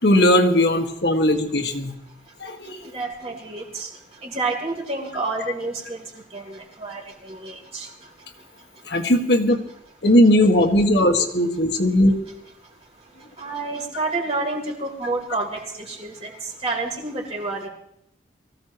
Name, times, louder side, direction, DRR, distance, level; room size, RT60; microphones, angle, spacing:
voice 1, 0.0-1.9 2.4-2.8 8.9-9.6 10.0-12.2, left 1 dB, 65° left, 3 dB, 1.9 m, -18 dB
voice 2, 2.8-3.9 4.2-6.0 6.3-7.9 13.4-16.3 16.6-17.7, right 3 dB, 35° right, -1 dB, 3.6 m, -29 dB
23.5 x 15.5 x 3.1 m, 0.77 s
head